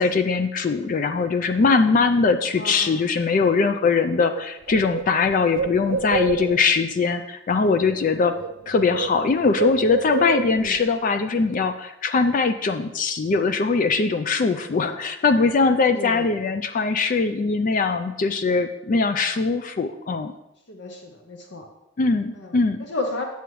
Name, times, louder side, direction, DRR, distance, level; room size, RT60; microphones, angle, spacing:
voice 1, 0.0-8.3 8.7-20.3 22.0-22.8, left 4 dB, 40° left, 9 dB, 0.3 m, -21 dB
voice 2, 2.5-3.0 10.5-10.8 14.5-15.0 15.8-16.3 20.7-21.7 22.3-22.5 22.8-23.2, left 2 dB, 55° left, 3 dB, 0.8 m, -33 dB
Bird, 3.9-4.0 4.3-6.8 7.9-8.1 8.4-10.8, right 5 dB, 60° right, 0.3 m, -29 dB
9.2 x 6.9 x 3.1 m, 0.90 s
head